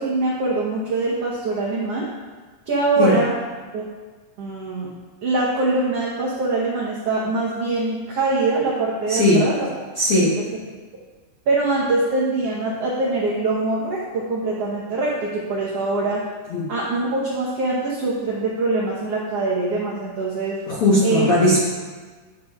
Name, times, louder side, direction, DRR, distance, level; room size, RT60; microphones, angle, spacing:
voice 1, 0.0-2.1 2.7-3.3 3.7-3.8 4.4-4.9 5.2-9.7 10.1-10.4 11.5-16.2 16.7-20.6 21.0-21.3, right 3 dB, 85° right, -5 dB, 1.3 m, -23 dB
voice 2, 9.1-9.4 10.0-10.3 16.5-16.6 20.7-21.7, left 1 dB, 75° left, -7 dB, 1.2 m, -18 dB
11.0 x 6.5 x 2.4 m, 1.4 s
omnidirectional pair, 4.2 m